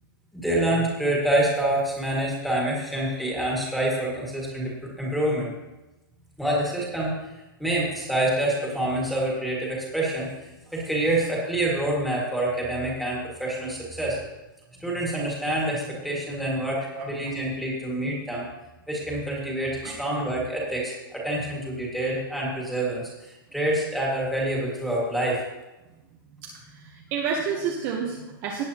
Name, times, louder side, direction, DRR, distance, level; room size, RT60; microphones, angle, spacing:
voice 1, 0.3-4.7 5.0-5.5 6.4-7.1 7.6-14.2 14.7-18.5 18.9-25.4, right 1 dB, ahead, -5 dB, 2.0 m, -27 dB
voice 2, 26.4-28.6, right 6 dB, 25° right, -1 dB, 0.9 m, -30 dB
17.0 x 8.2 x 2.9 m, 1.0 s
hypercardioid pair, 170°, 12 cm